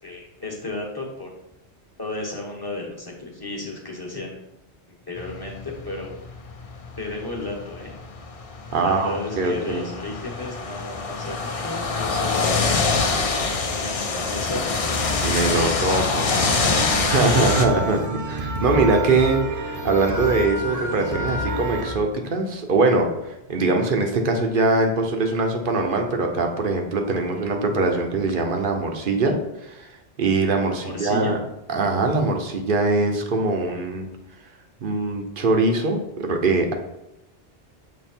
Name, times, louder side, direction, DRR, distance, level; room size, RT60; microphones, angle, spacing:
voice 1, 0.0-1.3 2.0-4.5 4.9-6.1 7.0-8.0 8.8-12.6 13.1-14.7 15.5-17.6 30.8-31.4 33.7-33.8, left 2 dB, 20° left, -2 dB, 1.1 m, -33 dB
sound 1, 5.2-17.7, left 4 dB, 40° left, 0.5 m, -25 dB
voice 2, 8.7-9.9 15.2-16.3 17.1-29.3 29.6-29.9 30.2-31.4 31.7-34.1 34.8-36.7, right 3 dB, 55° right, 3 dB, 1.0 m, -22 dB
sound 2, 16.6-21.9, equal, 20° right, 0.6 m, -29 dB
7.3 x 3.1 x 4.4 m, 0.89 s
omnidirectional pair, 1.1 m